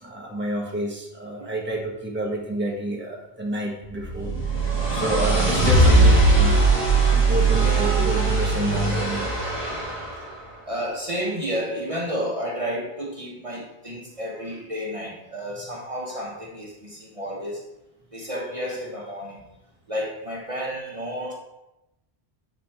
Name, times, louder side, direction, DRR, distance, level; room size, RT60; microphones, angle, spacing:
voice 1, 0.0-4.3 4.9-9.3, right 1 dB, 10° right, -1 dB, 1.3 m, -29 dB
sound 1, 4.0-10.1, right 3 dB, 25° left, 2.3 m, -19 dB
voice 2, 9.6-17.6 18.1-19.4 19.9-21.3, equal, 30° right, -3 dB, 1.3 m, -31 dB
8.5 x 7.4 x 3.5 m, 0.93 s
omnidirectional pair, 1.1 m